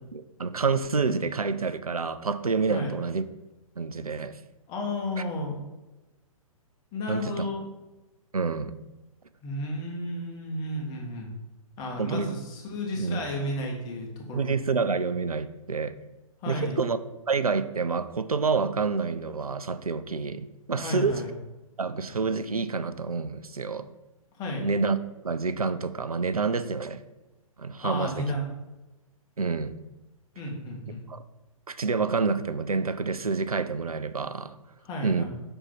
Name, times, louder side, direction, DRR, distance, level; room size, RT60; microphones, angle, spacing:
voice 1, 0.1-3.2 3.8-4.4 7.1-7.5 8.3-8.7 12.0-12.3 12.9-13.2 14.3-15.9 16.5-17.0 17.3-21.1 21.8-23.9 24.6-25.0 25.2-27.0 27.6-28.2 29.4-29.7 31.1-31.2 31.7-34.6 35.0-35.2, right 4 dB, 85° right, 13 dB, 0.4 m, -28 dB
voice 2, 4.7-5.6 6.9-7.6 9.4-11.3 11.8-14.4 16.4-16.8 20.7-21.3 24.3-24.7 27.8-28.5 30.4-31.0 34.8-35.2, left 1 dB, 20° left, 0 dB, 1.1 m, -33 dB
5.4 x 4.0 x 4.5 m, 1.1 s
figure-of-eight pair, 120°, 18 cm